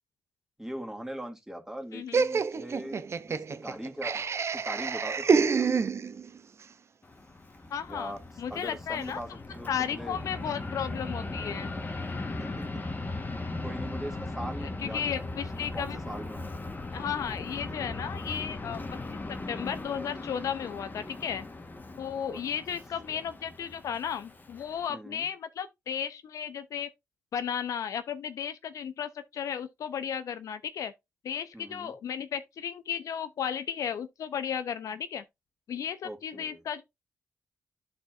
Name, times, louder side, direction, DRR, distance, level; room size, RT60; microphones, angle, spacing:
voice 1, 0.6-5.7 7.9-8.2 8.5-10.2 12.4-12.8 13.6-15.3 15.5-16.6 22.3-22.4 23.1-23.2 24.9-25.3 31.5-31.9 36.0-36.6, right 1 dB, 10° right, 2.4 m, -41 dB
voice 2, 1.9-2.2 7.7-9.2 9.7-11.7 14.6-16.0 16.9-18.8 19.3-21.4 22.0-26.9 27.3-30.9 31.2-35.2 35.7-36.8, left 8 dB, 75° left, 0.6 m, -34 dB
Laughter, 2.1-6.4, right 5 dB, 50° right, 0.7 m, -27 dB
Fixed-wing aircraft airplane, 7.0-24.9, left 2 dB, 35° left, 1.3 m, -38 dB
11.5 x 4.3 x 2.5 m
supercardioid pair, 50°, 6 cm